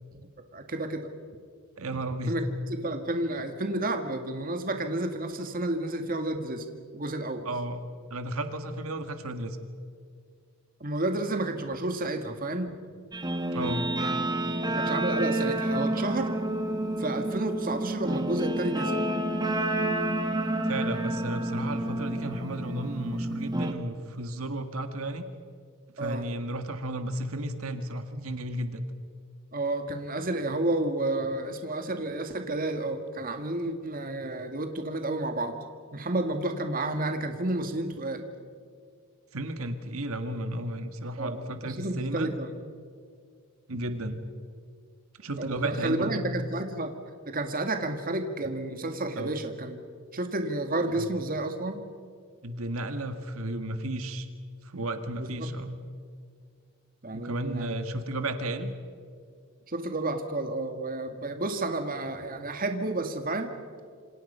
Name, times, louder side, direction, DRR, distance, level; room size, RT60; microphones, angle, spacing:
voice 1, 0.5-1.1 2.3-6.7 6.9-7.5 10.8-12.8 14.0-14.2 14.6-16.4 17.0-19.0 26.0-26.3 29.5-35.6 35.9-38.3 41.2-42.5 45.4-46.9 47.2-49.8 50.1-51.8 55.2-55.5 57.0-57.8 59.7-63.5, right 2 dB, 40° right, 6 dB, 1.7 m, -31 dB
voice 2, 1.8-2.3 7.4-9.6 13.5-13.9 20.6-25.2 26.0-28.8 39.3-42.3 43.7-44.2 45.2-46.2 49.2-49.3 52.4-54.3 54.6-55.8 57.1-58.7, right 1 dB, 75° right, 8 dB, 1.7 m, -33 dB
Guitar, 13.1-23.7, right 1 dB, 20° right, 1.7 m, -29 dB
27.5 x 26.5 x 5.6 m, 2.1 s
head